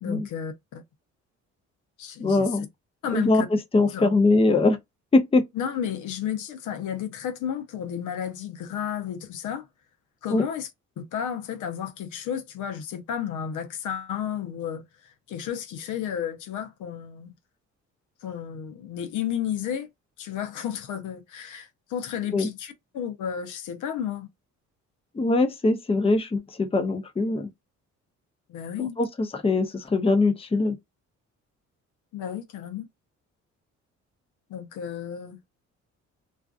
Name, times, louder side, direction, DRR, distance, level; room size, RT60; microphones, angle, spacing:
voice 1, 0.0-0.8 2.0-2.5 3.0-3.5 3.9-4.1 5.6-9.7 10.2-10.7 11.0-14.8 15.3-17.3 18.2-19.9 20.2-24.3 28.5-29.0 32.1-32.9 34.5-35.4, left 9 dB, 80° left, 0.7 m, -32 dB
voice 2, 2.2-2.7 3.1-4.8 5.1-5.4 10.3-10.4 22.3-22.5 25.1-27.5 28.8-30.8, left 3 dB, 20° left, 0.6 m, -22 dB
2.5 x 2.3 x 2.3 m
cardioid pair, 90°, 30 cm